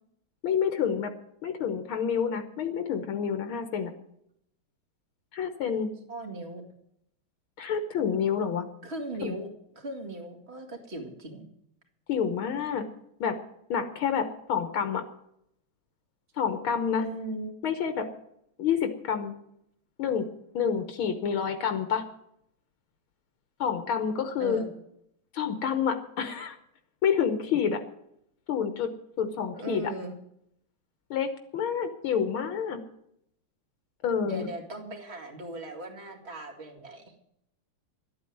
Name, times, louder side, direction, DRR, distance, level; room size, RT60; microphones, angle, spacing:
voice 1, 0.4-1.1 1.4-3.9 5.3-5.9 7.6-8.6 9.2-9.4 12.1-12.9 13.2-13.4 13.7-15.0 16.4-17.1 17.6-18.1 18.6-19.3 20.0-20.2 20.5-22.0 23.6-24.6 25.3-26.6 27.0-27.8 28.5-28.9 29.2-29.9 31.1-32.8 34.0-34.5, left 7 dB, 75° left, 8 dB, 1.9 m, -28 dB
voice 2, 6.1-6.6 8.8-9.5 9.7-11.5 17.0-17.5 24.4-24.7 29.5-30.1 34.2-37.0, right 2 dB, 30° right, 3 dB, 2.4 m, -38 dB
13.0 x 8.6 x 9.3 m, 0.75 s
omnidirectional pair, 2.3 m